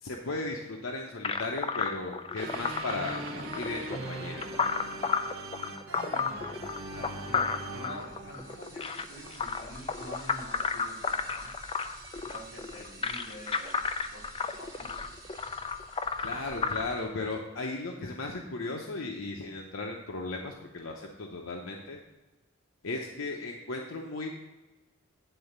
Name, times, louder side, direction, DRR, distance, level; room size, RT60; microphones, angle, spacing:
voice 1, 0.0-3.2 3.5-4.4 16.2-22.0 22.8-24.3, left 3 dB, 85° left, 1 dB, 0.8 m, -36 dB
sound 1, 1.2-16.8, left 5 dB, 25° left, 0.4 m, -33 dB
sound 2, 2.4-9.3, right 2 dB, 75° right, 0.9 m, -40 dB
voice 2, 6.9-11.5 12.2-15.0, equal, 60° left, -1 dB, 1.6 m, -47 dB
sound 3, 7.9-17.0, right 1 dB, 15° right, 1.6 m, -50 dB
9.1 x 4.0 x 6.6 m, 1.1 s
head